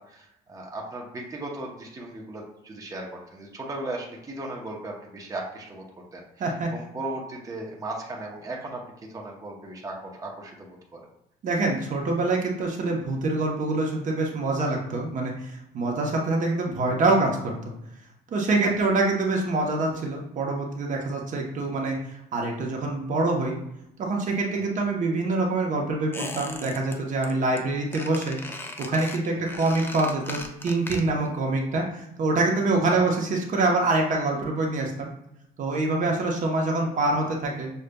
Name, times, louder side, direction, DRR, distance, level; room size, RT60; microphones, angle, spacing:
voice 1, 0.0-5.9 6.1-11.1 16.0-16.1 18.6-18.7 24.5-24.7 29.3-29.4 32.9-33.1 36.0-36.1, right 2 dB, 20° right, -1 dB, 0.9 m, -37 dB
voice 2, 11.4-17.7 18.3-22.0 22.3-23.6 24.0-28.4 28.8-35.1 35.6-37.7, right 2 dB, 50° right, 0 dB, 0.9 m, -25 dB
Squeak, 26.1-27.0 27.2-27.6 27.9-31.3 31.6-31.7, left 2 dB, 15° left, 0.5 m, -38 dB
6.5 x 2.4 x 2.2 m, 0.84 s
cardioid pair, 110°, 17 cm